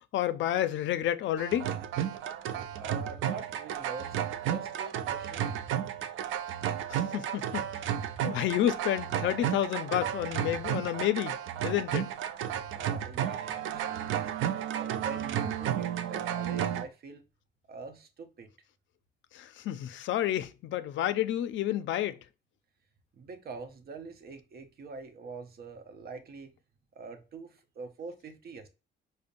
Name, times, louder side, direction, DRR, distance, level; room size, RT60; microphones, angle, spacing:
voice 1, 0.1-1.7 6.9-7.7 8.2-11.4 11.6-12.1 19.3-22.2, left 12 dB, 70° left, 0.4 m, -30 dB
sound 1, 1.4-16.8, right 10 dB, 80° right, 0.4 m, -33 dB
voice 2, 2.8-5.7 12.7-14.4 14.7-17.2 17.7-18.5 23.2-26.5 26.9-28.7, right 4 dB, 50° right, 0.7 m, -44 dB
5.1 x 2.1 x 2.5 m
cardioid pair, 90°, 20 cm